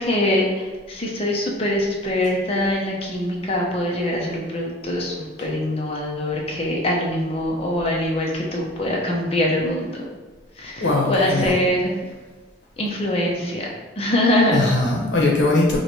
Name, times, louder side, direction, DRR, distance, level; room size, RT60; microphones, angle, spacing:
voice 1, 0.0-10.0 10.6-11.9 12.8-13.7 14.0-14.7, left 1 dB, 30° left, -1 dB, 0.7 m, -23 dB
voice 2, 10.8-11.6 14.5-15.8, left 2 dB, 80° left, -1 dB, 0.9 m, -20 dB
3.1 x 2.6 x 4.3 m, 1.2 s
head